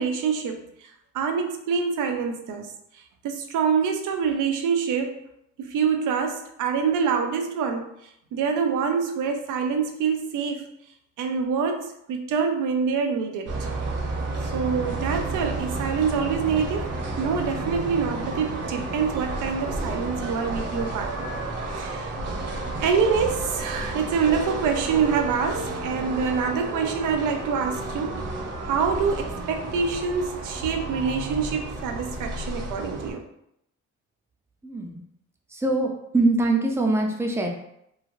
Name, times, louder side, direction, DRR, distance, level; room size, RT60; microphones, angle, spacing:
voice 1, 0.0-2.7 3.2-5.2 5.6-7.9 8.3-10.7 11.2-13.7 14.5-21.3 21.7-22.2 22.8-28.2 28.6-33.3, right 6 dB, 85° right, 5 dB, 0.5 m, -26 dB
sound 1, 13.5-33.1, right 2 dB, 55° right, 0.8 m, -31 dB
voice 2, 34.6-35.0 35.5-37.5, right 2 dB, 10° right, 1 dB, 0.5 m, -23 dB
3.1 x 2.3 x 2.5 m, 0.76 s
cardioid pair, 90°, 30 cm